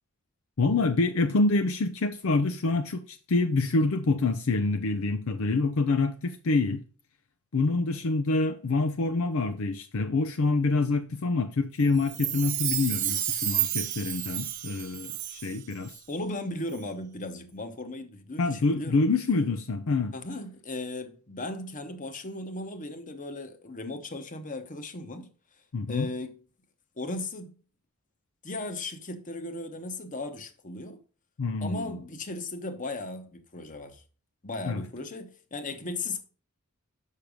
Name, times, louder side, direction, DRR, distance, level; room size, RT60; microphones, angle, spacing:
voice 1, 0.6-6.8 7.5-16.0 18.4-20.1 25.7-26.1 31.4-31.8 34.7-34.8, left 3 dB, 65° left, 0.5 m, -26 dB
Chime, 12.0-15.6 15.9-16.0, right 11 dB, 40° right, 0.9 m, -31 dB
voice 2, 16.1-19.0 20.1-25.3 25.9-26.4 27.0-27.6 28.4-31.0 31.6-34.0 34.4-36.2, left 2 dB, 35° left, 1.0 m, -36 dB
6.6 x 5.9 x 5.0 m
head